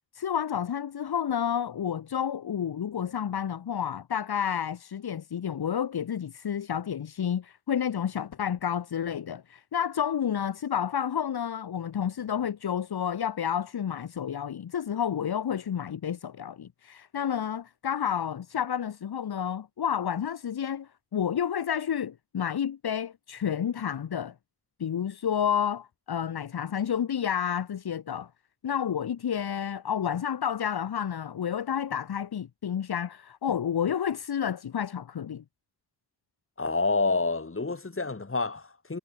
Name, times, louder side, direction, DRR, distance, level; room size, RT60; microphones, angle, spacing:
voice 1, 0.1-24.3 24.8-28.3 28.6-35.4, left 8 dB, 75° left, 1.6 m, -30 dB
voice 2, 36.6-39.0, left 3 dB, 35° left, 5.9 m, -28 dB
cardioid pair, 70°, 38 cm